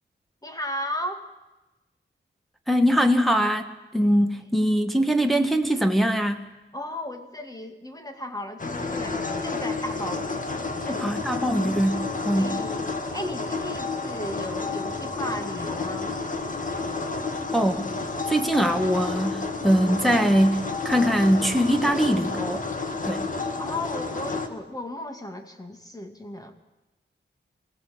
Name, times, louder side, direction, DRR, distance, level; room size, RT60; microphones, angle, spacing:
voice 1, 0.4-1.3 6.7-10.4 10.9-11.2 12.4-16.1 23.6-26.5, left 1 dB, 20° left, 5 dB, 2.2 m, -35 dB
voice 2, 2.7-6.4 11.0-12.6 17.5-17.9 18.3-22.6 23.0-23.3, equal, ahead, 4 dB, 1.2 m, -22 dB
sound 1, 8.6-24.5, left 3 dB, 40° left, 1.9 m, -30 dB
25.0 x 17.0 x 7.7 m, 1.1 s
wide cardioid pair, 135°, 20 cm